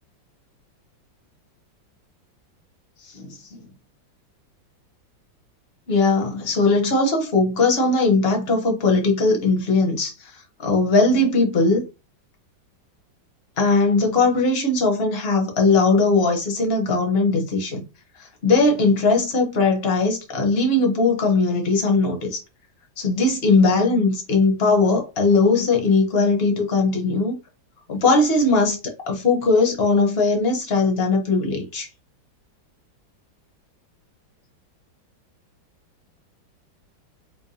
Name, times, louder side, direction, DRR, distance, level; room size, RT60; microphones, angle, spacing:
voice 1, 5.9-10.3 10.6-11.9 13.6-17.8 18.2-22.4 23.0-27.4 27.9-28.8 29.0-31.9, left 3 dB, 45° left, 0.8 m, -19 dB
5.2 x 2.3 x 2.7 m
omnidirectional pair, 2.1 m